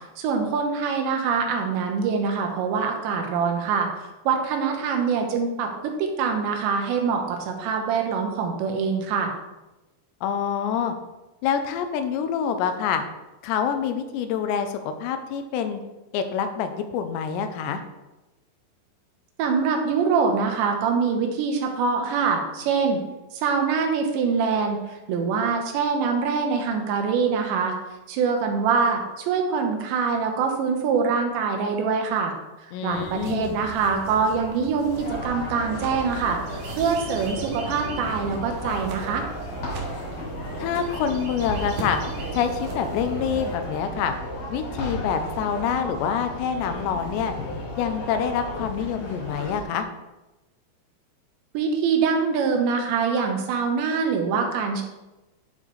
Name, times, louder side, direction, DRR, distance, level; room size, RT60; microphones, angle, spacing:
voice 1, 0.2-3.9 4.3-5.7 6.0-9.3 19.4-23.0 23.3-24.8 25.1-27.7 28.1-32.3 32.8-39.2 51.5-54.8, right 5 dB, 80° right, 3 dB, 3.4 m, -24 dB
voice 2, 10.2-10.9 11.4-13.0 13.4-15.8 16.1-17.8 32.7-33.6 40.6-42.0 42.3-44.1 44.5-47.3 47.8-49.9, left 7 dB, 85° left, 8 dB, 2.9 m, -26 dB
sound 1, 32.9-43.6, right 3 dB, 60° right, 2.6 m, -38 dB
sound 2, 34.9-49.6, equal, 50° left, 4.1 m, -34 dB
11.0 x 7.9 x 3.3 m, 1.0 s
omnidirectional pair, 5.1 m